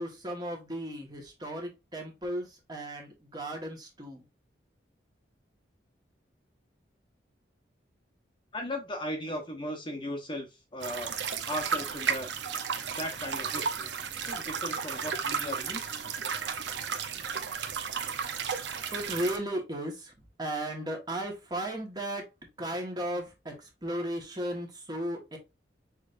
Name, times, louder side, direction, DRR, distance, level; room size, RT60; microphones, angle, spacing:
voice 1, 0.0-4.3 18.9-20.1 20.4-22.3 22.6-25.4, right 1 dB, 20° right, 1.4 m, -35 dB
voice 2, 8.5-11.1 11.5-12.3 13.0-13.9 14.2-16.1, left 1 dB, 25° left, 1.0 m, -37 dB
sound 1, 10.8-19.4, right 6 dB, 65° right, 0.7 m, -33 dB
6.3 x 3.3 x 2.5 m
head